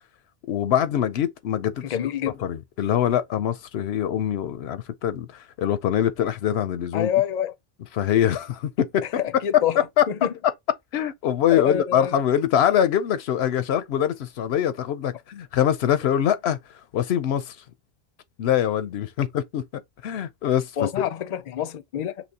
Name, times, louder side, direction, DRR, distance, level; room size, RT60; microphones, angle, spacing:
voice 1, 0.5-1.8 2.4-7.1 7.9-9.0 9.5-10.3 10.9-16.6 16.9-17.5 18.4-19.6 20.0-20.7, left 10 dB, 90° left, 0.9 m, -23 dB
voice 2, 1.8-2.3 6.9-7.5 9.2-9.8 10.1-10.3 11.5-12.1 20.8-22.2, left 9 dB, 50° left, 0.6 m, -26 dB
5.9 x 3.0 x 2.8 m
omnidirectional pair, 1.0 m